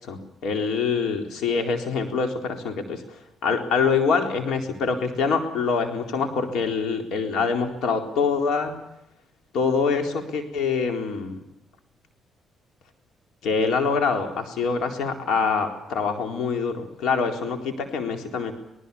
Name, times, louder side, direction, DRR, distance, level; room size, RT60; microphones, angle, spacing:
voice 1, 0.1-3.0 3.4-8.8 9.5-11.4 13.4-18.5, left 5 dB, 80° left, 5 dB, 4.1 m, -25 dB
26.5 x 19.0 x 7.1 m, 0.87 s
cardioid pair, 90°, 0 cm